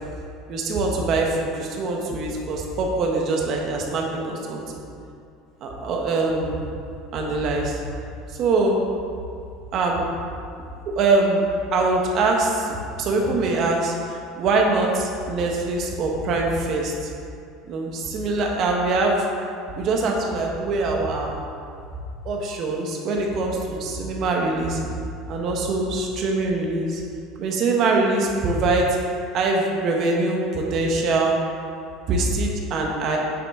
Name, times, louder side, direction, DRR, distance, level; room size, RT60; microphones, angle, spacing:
voice 1, 0.5-4.6 5.6-6.6 7.1-7.7 8.4-8.8 9.7-10.0 10.9-11.4 11.7-12.5 13.0-13.9 14.4-16.9 17.7-19.2 19.8-21.3 22.2-24.8 25.3-27.0 27.4-28.9 29.3-31.4 32.1-33.2, right 3 dB, 40° right, 0 dB, 1.2 m, -23 dB
9.2 x 6.8 x 3.7 m, 2.5 s
cardioid pair, 170°, 0 cm